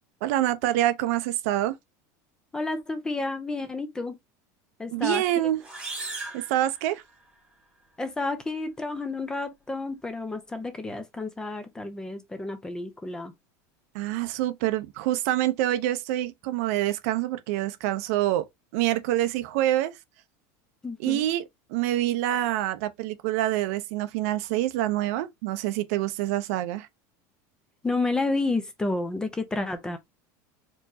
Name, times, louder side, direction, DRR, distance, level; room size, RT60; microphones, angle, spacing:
voice 1, 0.2-1.8 4.9-5.6 6.3-7.0 13.9-18.5 18.7-19.9 21.0-21.4 21.7-26.9, right 14 dB, 65° right, 0.6 m, -26 dB
voice 2, 2.5-4.2 4.8-5.2 8.0-13.3 20.8-21.2 27.8-30.0, left 2 dB, 10° left, 0.5 m, -30 dB
sound 1, 5.6-7.4, right 3 dB, 10° right, 1.1 m, -38 dB
4.5 x 3.0 x 2.6 m
supercardioid pair, 165°, 9 cm